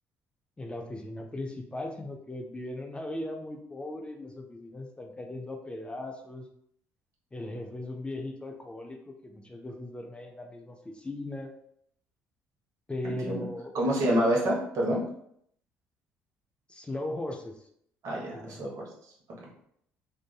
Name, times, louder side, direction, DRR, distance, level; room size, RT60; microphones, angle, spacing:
voice 1, 0.6-6.5 7.3-11.6 12.9-13.7 16.7-17.7 18.3-18.7, left 1 dB, 15° left, 3 dB, 0.4 m, -38 dB
voice 2, 13.0-13.4 13.7-15.0 18.0-18.8, equal, 60° right, -3 dB, 1.0 m, -27 dB
2.6 x 2.5 x 2.3 m, 0.69 s
supercardioid pair, 65°, 6 cm